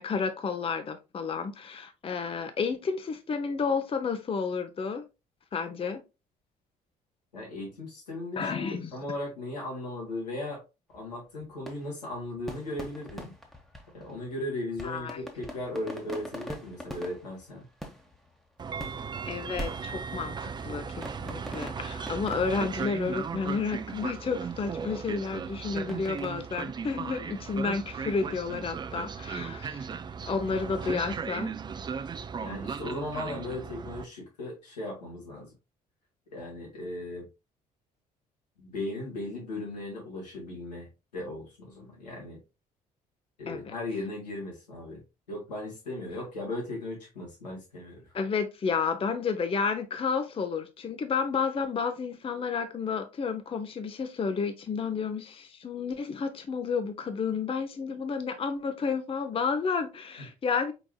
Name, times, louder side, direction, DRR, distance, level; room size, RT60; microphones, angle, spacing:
voice 1, 0.0-5.0 5.5-6.0 8.4-8.9 14.8-15.2 19.2-29.9 30.3-31.5 43.5-43.7 48.1-60.7, left 5 dB, 25° left, 0.6 m, -31 dB
voice 2, 7.3-10.6 10.9-13.3 13.9-17.7 32.4-35.5 36.3-37.3 38.6-40.9 41.1-42.4 43.4-45.0 45.3-48.1, left 1 dB, 85° left, 1.6 m, -37 dB
sound 1, 10.9-27.6, equal, ahead, 1.1 m, -45 dB
Train, 18.6-34.0, right 6 dB, 20° right, 0.4 m, -37 dB
4.6 x 4.0 x 2.2 m
figure-of-eight pair, 50°, 21 cm